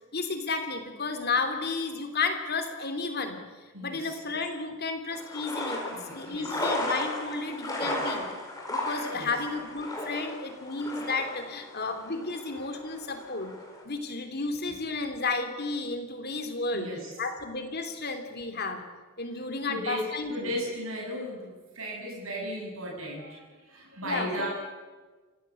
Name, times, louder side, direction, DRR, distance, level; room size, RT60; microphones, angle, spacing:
voice 1, 0.1-3.4 3.8-8.2 8.7-13.5 13.8-16.9 17.2-18.8 19.2-20.5 24.0-24.5, left 3 dB, 50° left, 6 dB, 3.1 m, -32 dB
voice 2, 3.7-4.2 5.9-6.7 7.8-8.0 9.1-9.3 16.7-17.1 19.7-24.5, equal, 75° right, -2 dB, 6.8 m, -36 dB
sound 1, 5.1-13.8, left 1 dB, 15° left, 4.9 m, -35 dB
27.5 x 15.0 x 8.3 m, 1.3 s
head